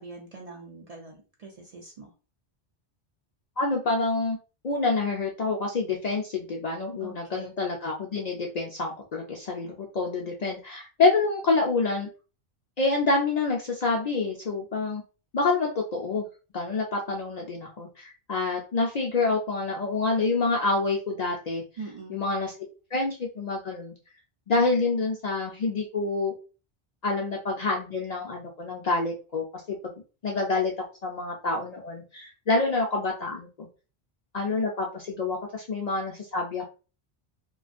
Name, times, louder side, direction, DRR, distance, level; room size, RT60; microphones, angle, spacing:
voice 1, 0.0-2.1 7.0-7.5 21.8-22.2, right 4 dB, 50° right, -1 dB, 0.5 m, -43 dB
voice 2, 3.6-4.4 4.6-12.1 12.8-15.0 15.3-16.3 16.5-21.6 22.1-22.5 22.9-23.9 24.5-26.3 27.0-29.9 30.2-30.7 31.0-33.7 34.3-36.7, left 3 dB, 55° left, -1 dB, 0.5 m, -27 dB
2.4 x 2.3 x 2.4 m, 0.33 s
omnidirectional pair, 1.1 m